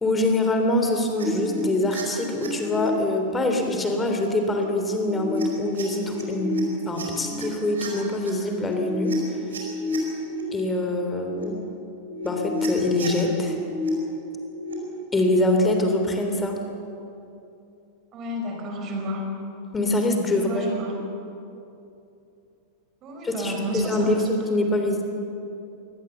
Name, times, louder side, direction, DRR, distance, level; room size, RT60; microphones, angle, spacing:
voice 1, 0.0-9.2 10.5-11.6 12.2-13.6 15.1-16.6 19.7-20.7 23.2-25.0, left 1 dB, 15° left, 4 dB, 3.3 m, -24 dB
sound 1, 1.2-2.9 3.2-3.8 4.4-4.6 5.0-7.4 7.7-10.4 11.0-11.4 11.9-13.9 14.3-14.7, left 1 dB, 70° right, 5.0 m, -31 dB
voice 2, 18.1-19.3 20.3-20.9 23.0-24.2, equal, 35° right, 2 dB, 5.3 m, -30 dB
23.5 x 18.0 x 7.0 m, 2.8 s
figure-of-eight pair, 90°, 0 cm